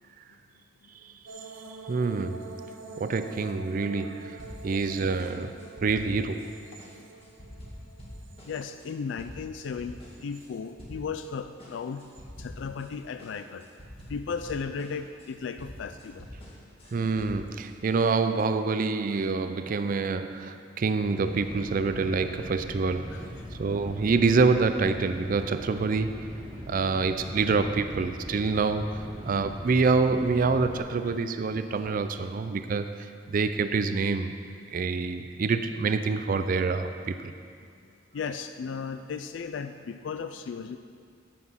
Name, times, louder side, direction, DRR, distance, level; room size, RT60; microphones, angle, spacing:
sound 1, 1.3-9.4 9.8-10.7 11.9-12.2, right 3 dB, 70° right, 1.0 m, -46 dB
voice 1, 1.9-2.6 3.0-6.5 16.9-23.2 23.6-26.2 26.7-34.3 34.7-37.3, right 4 dB, 45° right, 9 dB, 0.4 m, -26 dB
sound 2, 4.4-4.9 5.2-6.5 6.8-10.5 10.8-11.3 11.6-12.9 13.2-17.7 18.0-18.4, equal, 30° left, 2.0 m, -46 dB
voice 2, 8.5-9.9 10.2-12.0 12.4-13.7 14.1-16.3 23.1-23.3 31.0-31.1 38.1-40.8, left 5 dB, 65° left, 9 dB, 0.3 m, -35 dB
sound 3, 21.0-30.8, equal, 25° right, 1.7 m, -41 dB
9.7 x 7.5 x 5.8 m, 2.2 s
head